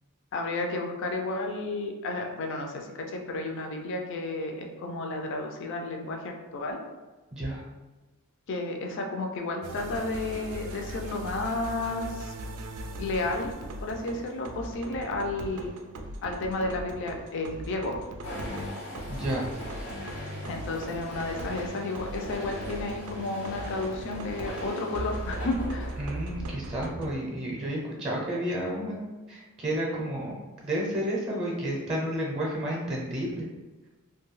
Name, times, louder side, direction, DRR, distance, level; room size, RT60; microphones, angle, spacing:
voice 1, 0.3-6.8 8.5-12.3 13.0-13.5 13.8-15.7 16.2-18.0 20.5-26.0, left 2 dB, 60° left, 2 dB, 0.4 m, -32 dB
voice 2, 7.3-7.6 19.1-19.5 26.0-30.3 30.6-33.5, right 1 dB, 25° right, -3 dB, 0.5 m, -31 dB
sound 1, 9.6-27.1, right 1 dB, 85° right, 0.3 m, -39 dB
sound 2, 18.2-26.4, left 1 dB, 85° left, 1.1 m, -40 dB
2.5 x 2.2 x 3.1 m, 1.2 s
head